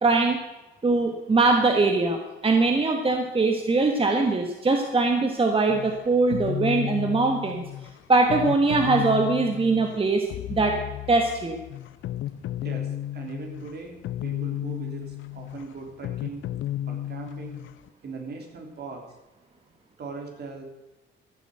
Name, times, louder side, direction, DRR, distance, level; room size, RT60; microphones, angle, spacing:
voice 1, 0.0-0.4 0.8-2.2 2.4-7.6 8.1-10.8 11.1-11.6, right 3 dB, 30° right, 3 dB, 1.4 m, -22 dB
sound 1, 5.7-17.9, left 12 dB, 75° left, 0.6 m, -33 dB
voice 2, 12.6-16.4 16.9-17.6 18.0-19.0 20.0-20.6, right 4 dB, 55° right, 2 dB, 3.5 m, -39 dB
14.5 x 7.3 x 7.9 m, 1.1 s
cardioid pair, 90°, 20 cm